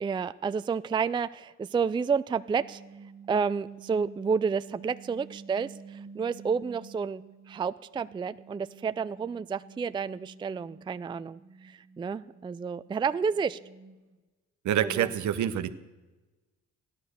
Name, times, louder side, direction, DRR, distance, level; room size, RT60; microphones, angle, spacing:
voice 1, 0.0-2.8 3.3-7.2 7.5-13.6 14.8-15.1, right 6 dB, 15° right, 13 dB, 0.4 m, -30 dB
sound 1, 2.3-7.6 7.9-14.2, right 6 dB, 40° right, 1.5 m, -50 dB
voice 2, 14.6-15.8, right 10 dB, 70° right, 11 dB, 1.0 m, -27 dB
15.0 x 11.0 x 6.7 m, 1.2 s
cardioid pair, 90°, 30 cm